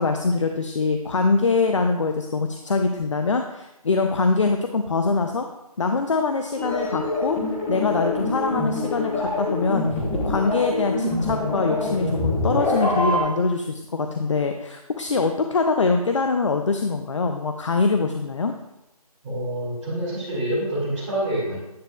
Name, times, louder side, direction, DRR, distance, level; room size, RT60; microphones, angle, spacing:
voice 1, 0.0-5.5 5.8-7.4 7.7-18.5, left 4 dB, 50° left, 5 dB, 0.6 m, -23 dB
sound 1, 6.6-13.2, left 2 dB, 5° left, 0.7 m, -25 dB
voice 2, 19.2-21.6, right 1 dB, 15° right, -12 dB, 2.2 m, -27 dB
9.4 x 8.0 x 2.3 m, 0.93 s
figure-of-eight pair, 160°, 20 cm